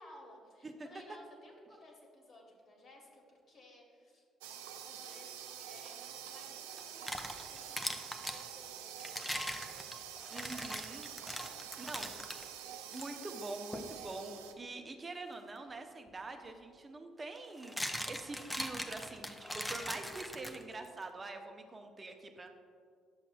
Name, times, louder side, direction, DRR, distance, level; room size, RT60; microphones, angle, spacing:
voice 1, 0.0-4.2 4.8-9.9 11.3-11.9 19.0-19.2, left 1 dB, 45° left, 0 dB, 1.6 m, -58 dB
sound 1, 4.4-14.5, right 9 dB, 70° right, 0.4 m, -47 dB
sound 2, 6.8-8.4 9.0-12.4 12.9-13.1 13.7-13.9 16.1-16.2 17.4-20.9, equal, 5° left, 0.6 m, -41 dB
voice 2, 10.3-11.1 11.4-12.1 12.9-22.5, right 3 dB, 30° right, 5 dB, 0.7 m, -45 dB
9.5 x 6.8 x 2.4 m, 2.3 s
figure-of-eight pair, 45°, 0 cm